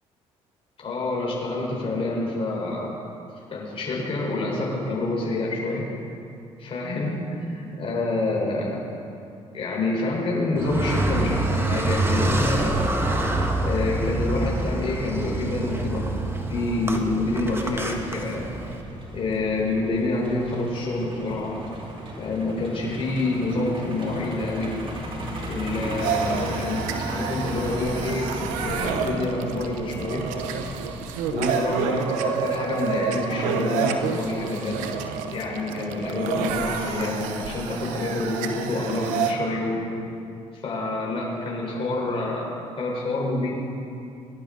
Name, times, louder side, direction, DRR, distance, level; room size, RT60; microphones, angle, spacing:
voice 1, 0.8-3.0 3.5-5.9 6.6-8.8 9.5-12.9 13.6-16.0 16.5-18.5 19.1-21.6 22.2-24.7 25.5-30.2 31.3-34.8 35.3-39.8 40.6-42.5 42.8-43.5, left 2 dB, 50° left, -3 dB, 4.0 m, -27 dB
Car, 10.6-18.8, right 2 dB, 20° right, 1.5 m, -26 dB
Truck, 14.0-31.7, right 1 dB, 45° right, 2.8 m, -36 dB
sound 1, 26.0-39.3, right 6 dB, 90° right, 0.9 m, -29 dB
20.5 x 11.0 x 3.9 m, 2.6 s
supercardioid pair, 75°, 13 cm